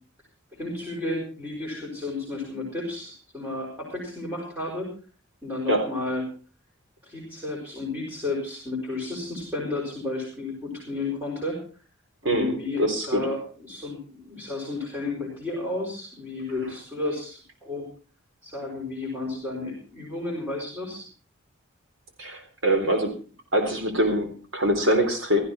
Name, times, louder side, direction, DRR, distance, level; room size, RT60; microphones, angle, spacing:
voice 1, 0.6-4.9 5.4-6.2 7.0-11.6 12.2-17.9 18.4-21.1, left 2 dB, 10° right, -5 dB, 5.6 m, -32 dB
voice 2, 12.2-13.2 22.2-23.1 23.5-25.4, right 1 dB, 65° right, 5 dB, 3.8 m, -24 dB
16.5 x 15.0 x 4.4 m, 0.37 s
head